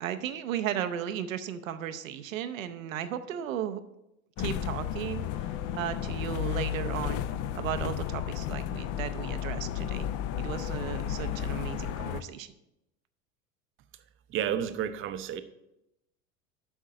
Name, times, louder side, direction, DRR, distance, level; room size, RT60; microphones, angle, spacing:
voice 1, 0.0-3.8 4.4-7.2 7.5-10.1 10.4-12.5, right 10 dB, 70° right, 10 dB, 0.7 m, -35 dB
sound 1, 4.4-12.2, left 10 dB, 35° left, 0.5 m, -33 dB
voice 2, 14.3-15.4, right 9 dB, 30° right, 11 dB, 0.6 m, -31 dB
7.9 x 5.5 x 4.8 m, 0.88 s
figure-of-eight pair, 80°, 41 cm